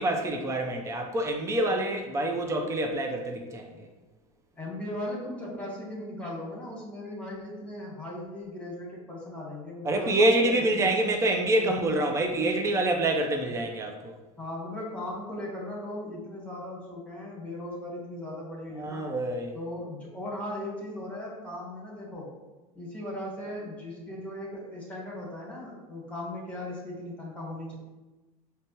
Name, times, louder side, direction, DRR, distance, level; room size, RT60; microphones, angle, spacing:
voice 1, 0.0-3.9 9.8-14.2 18.8-19.5, right 1 dB, 15° right, 2 dB, 0.5 m, -26 dB
voice 2, 4.6-10.4 10.7-10.9 14.4-19.1 19.5-22.3 22.7-27.7, left 1 dB, 5° left, -4 dB, 1.4 m, -38 dB
5.1 x 2.2 x 2.8 m, 1.1 s
hypercardioid pair, 95°, 18 cm